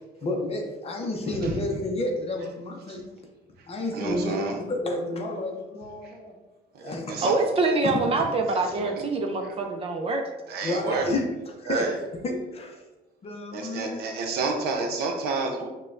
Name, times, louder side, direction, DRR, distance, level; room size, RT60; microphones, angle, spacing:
voice 1, 0.2-3.1 3.7-6.3 6.8-7.3 7.8-7.9 10.6-11.8 12.2-12.8 13.2-14.0, left 2 dB, 35° left, 2 dB, 0.6 m, -31 dB
voice 2, 3.9-4.6 6.0-6.1 6.7-7.4 8.5-9.0 9.4-9.5 10.5-11.1 11.7-12.0 13.5-15.7, right 4 dB, 70° right, 2 dB, 0.7 m, -30 dB
voice 3, 7.2-10.2, right 3 dB, 35° right, 4 dB, 0.4 m, -25 dB
4.9 x 2.2 x 2.5 m, 1.1 s
cardioid pair, 110°, 17 cm